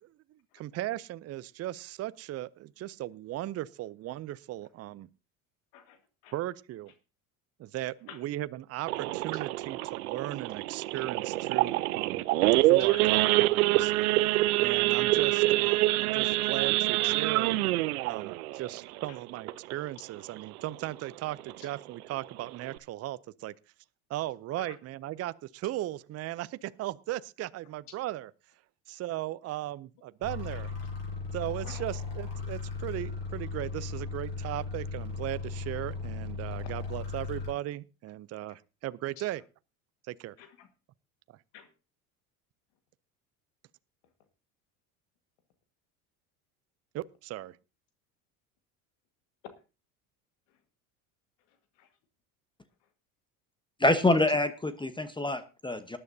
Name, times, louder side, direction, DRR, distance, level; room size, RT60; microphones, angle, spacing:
voice 1, 0.0-5.1 6.3-6.9 7.6-12.2 12.6-13.9 14.6-17.5 18.0-23.5 24.1-28.3 28.9-30.7 31.3-39.4 40.1-40.4 46.9-47.6, right 15 dB, 35° right, 0.5 m, -37 dB
voice 2, 5.7-6.4 8.1-8.2 12.9-13.1 19.1-19.2 24.6-24.7 30.5-30.6 31.6-31.9 39.2-39.3 40.4-40.7 41.5-41.7 49.4-49.5 51.5-51.9 54.3-54.4, left 10 dB, 70° left, 1.8 m, -49 dB
Idling / Accelerating revving vroom / Sawing, 8.9-20.0 20.4-20.6 20.8-20.9 21.4-21.7 22.1-22.2 22.4-22.8, right 18 dB, 85° right, 0.7 m, -26 dB
sound 1, 30.2-37.5, left 4 dB, 35° left, 7.5 m, -37 dB
voice 3, 53.8-56.0, left 2 dB, 10° left, 1.0 m, -26 dB
19.0 x 11.0 x 2.7 m
hypercardioid pair, 80°, 43 cm